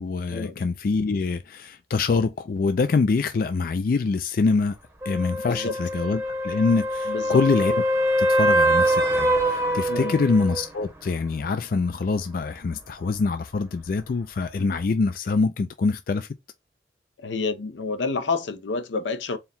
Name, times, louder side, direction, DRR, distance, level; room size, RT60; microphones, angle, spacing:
voice 1, 0.0-4.8 5.1-7.8 8.2-16.3, left 4 dB, 50° left, 0.3 m, -25 dB
sound 1, 5.0-10.7 14.8-14.9, right 1 dB, 15° right, 0.8 m, -23 dB
voice 2, 7.1-7.4 9.9-10.2 17.2-19.4, left 4 dB, 85° left, 0.6 m, -29 dB
4.4 x 2.2 x 3.5 m
head